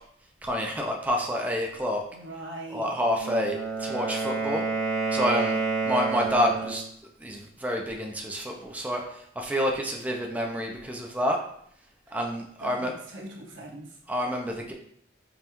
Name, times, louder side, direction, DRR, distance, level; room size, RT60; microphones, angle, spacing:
voice 1, 0.4-2.0 2.7-4.6 5.1-5.6 5.8-6.8 7.2-11.4 12.1-12.9 14.1-14.7, equal, 10° right, 1 dB, 0.4 m, -28 dB
voice 2, 2.1-2.9 12.1-12.2 12.6-14.0, right 1 dB, 90° right, -1 dB, 0.9 m, -41 dB
Wind instrument woodwind instrument, 3.1-6.9, right 4 dB, 20° left, 1.0 m, -29 dB
5.3 x 2.3 x 2.9 m, 0.65 s
head